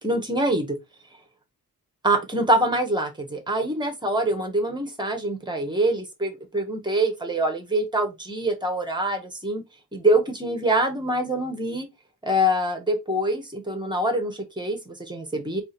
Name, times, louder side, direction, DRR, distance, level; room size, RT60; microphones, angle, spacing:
voice 1, 0.0-0.8 2.0-9.6 9.9-11.9 12.2-15.6, right 1 dB, 10° right, 1.3 m, -25 dB
3.8 x 3.3 x 4.1 m
wide cardioid pair, 160°, 36 cm